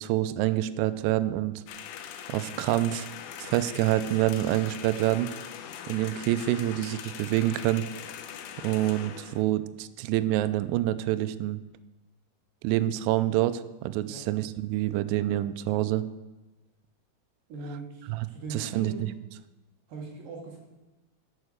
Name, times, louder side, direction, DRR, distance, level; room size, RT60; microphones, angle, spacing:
voice 1, 0.0-1.6 2.3-3.1 3.4-5.3 5.9-7.9 8.6-11.6 12.6-16.1 18.1-18.9, right 14 dB, 85° right, 12 dB, 2.5 m, -27 dB
sound 1, 1.7-9.4, left 9 dB, 90° left, 3.0 m, -41 dB
voice 2, 17.5-19.1 19.9-20.6, right 3 dB, 60° right, -1 dB, 2.8 m, -40 dB
9.2 x 6.5 x 6.6 m, 1.1 s
omnidirectional pair, 5.1 m